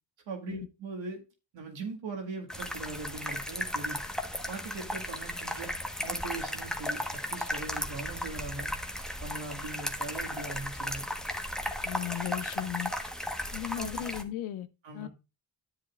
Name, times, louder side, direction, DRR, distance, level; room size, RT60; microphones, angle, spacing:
voice 1, 0.3-1.2 1.5-4.0 4.5-5.7 6.0-8.7 9.2-11.0 13.8-13.9 14.8-15.1, right 3 dB, 70° right, 2.1 m, -40 dB
sound 1, 2.5-14.2, left 1 dB, ahead, 1.2 m, -35 dB
voice 2, 11.8-12.9 13.5-14.7 14.9-15.1, left 12 dB, 90° left, 0.7 m, -36 dB
10.5 x 7.4 x 2.4 m
supercardioid pair, 50°, 47 cm